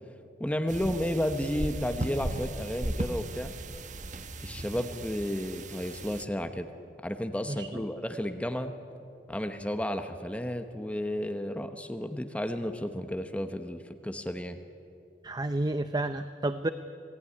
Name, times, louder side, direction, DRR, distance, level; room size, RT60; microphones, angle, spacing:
voice 1, 0.4-3.5 4.4-6.7 7.0-8.7 9.3-14.6, equal, 10° left, 7 dB, 1.0 m, -32 dB
sound 1, 0.7-6.3, right 1 dB, 45° right, 1.1 m, -37 dB
voice 2, 7.5-7.8 15.2-16.7, right 2 dB, 25° right, 11 dB, 0.6 m, -31 dB
26.5 x 18.0 x 9.8 m, 2.6 s
head